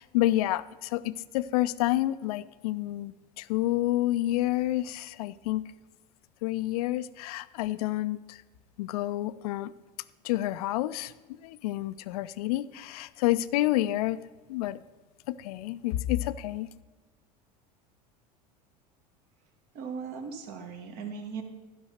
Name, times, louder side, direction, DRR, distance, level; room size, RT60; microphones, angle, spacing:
voice 1, 0.0-5.6 6.4-8.4 8.8-9.7 10.2-11.1 11.4-14.2 14.5-14.8 15.3-16.7, left 15 dB, 60° left, 15 dB, 0.5 m, -29 dB
voice 2, 19.7-21.4, right 5 dB, 50° right, 5 dB, 1.6 m, -38 dB
12.0 x 5.5 x 6.5 m, 1.3 s
hypercardioid pair, 80°, 21 cm